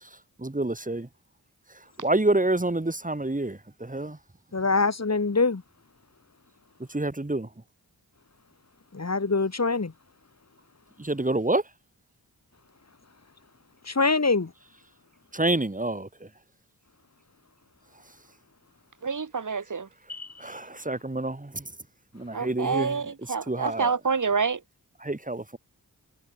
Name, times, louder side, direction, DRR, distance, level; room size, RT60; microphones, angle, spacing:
voice 1, 0.4-1.1 2.0-4.2 6.9-7.5 11.0-11.6 15.3-16.1 20.4-21.6 22.1-23.0 23.5-23.9 25.0-25.6, right 2 dB, 20° right, 4.8 m, -27 dB
voice 2, 4.5-5.6 8.9-9.9 13.9-14.5 20.1-20.3, left 3 dB, 45° left, 5.0 m, -24 dB
voice 3, 19.0-19.9 22.3-24.6, right 5 dB, 55° right, 2.3 m, -27 dB
cardioid pair, 60°, 37 cm